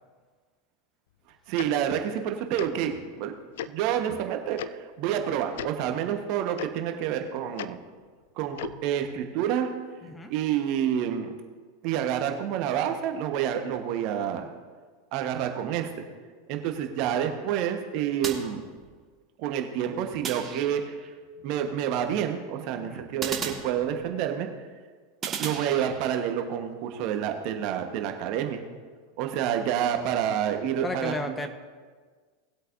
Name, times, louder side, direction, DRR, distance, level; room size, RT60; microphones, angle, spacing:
voice 1, 1.5-3.3 3.7-7.8 8.4-9.7 10.3-11.3 11.8-14.5 15.1-16.0 16.5-18.6 19.4-21.0 21.4-24.5 25.4-28.6 29.2-31.4, right 9 dB, 55° right, 5 dB, 1.2 m, -28 dB
Tick-tock, 1.6-1.7 2.6-2.7 3.6-3.7 4.6-4.7 5.5-5.7 6.6-6.7 7.6-7.7 8.5-8.8, left 11 dB, 70° left, 0.4 m, -35 dB
sound 1, 18.2-19.2 20.2-21.1 23.2-24.3 25.2-26.3, right 6 dB, 30° right, 1.6 m, -36 dB
voice 2, 30.8-31.5, left 2 dB, 15° left, 7 dB, 1.1 m, -33 dB
19.0 x 8.1 x 2.7 m, 1.5 s
hypercardioid pair, 90°, 0 cm